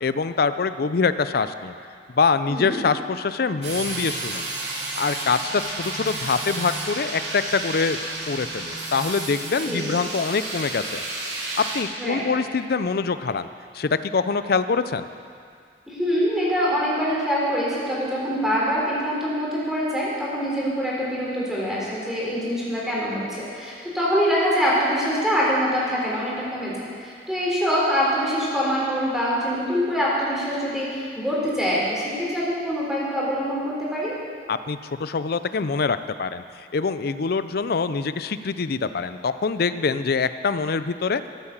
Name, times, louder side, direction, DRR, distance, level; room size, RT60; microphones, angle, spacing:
voice 1, 0.0-1.7 2.2-4.5 5.0-8.0 8.3-11.0 11.6-13.5 13.7-15.1 34.5-36.4 36.7-41.3, left 5 dB, 60° left, 12 dB, 0.5 m, -24 dB
sound 1, 3.6-11.8, right 2 dB, 90° right, 2.5 m, -31 dB
voice 2, 15.9-34.2, equal, 5° right, -7 dB, 3.6 m, -24 dB
13.5 x 8.8 x 7.3 m, 2.2 s
head